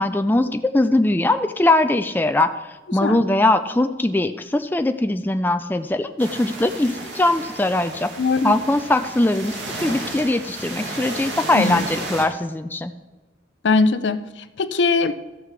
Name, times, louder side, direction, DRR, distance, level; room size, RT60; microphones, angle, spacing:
voice 1, 0.0-2.5 2.9-8.1 8.4-12.9, left 2 dB, 10° left, 8 dB, 0.3 m, -21 dB
sound 1, 6.2-12.2, right 2 dB, 80° right, 2.1 m, -33 dB
voice 2, 8.2-8.6 11.5-11.9 13.6-15.1, left 4 dB, 75° left, 12 dB, 0.5 m, -21 dB
14.5 x 5.7 x 4.7 m, 1.2 s
head